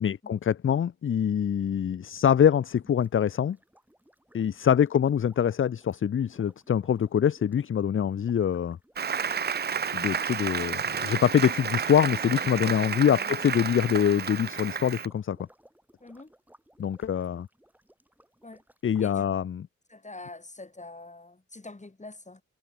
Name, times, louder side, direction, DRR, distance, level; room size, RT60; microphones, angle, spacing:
voice 1, 0.0-3.6 4.3-8.8 9.9-15.4 16.8-17.5 18.8-19.6, left 8 dB, 45° left, 0.4 m, -24 dB
sound 1, 2.8-19.1, right 1 dB, 5° right, 3.3 m, -60 dB
Applause, 9.0-15.1, right 7 dB, 35° right, 0.4 m, -31 dB
voice 2, 10.7-11.2 12.8-13.3 16.0-16.3 18.4-18.6 19.0-19.3 19.9-22.4, left 2 dB, 25° left, 5.1 m, -45 dB
wide cardioid pair, 105°, 29 cm